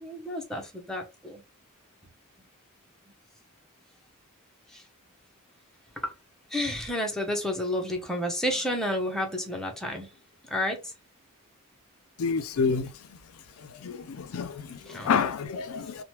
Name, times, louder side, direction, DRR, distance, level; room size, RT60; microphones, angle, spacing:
voice 1, 0.0-1.4 6.5-10.1 10.5-10.8 14.9-15.1, left 1 dB, 5° left, 0.6 m, -30 dB
voice 2, 12.2-12.9 13.8-16.0, left 5 dB, 75° left, 0.4 m, -28 dB
2.9 x 2.1 x 3.0 m
head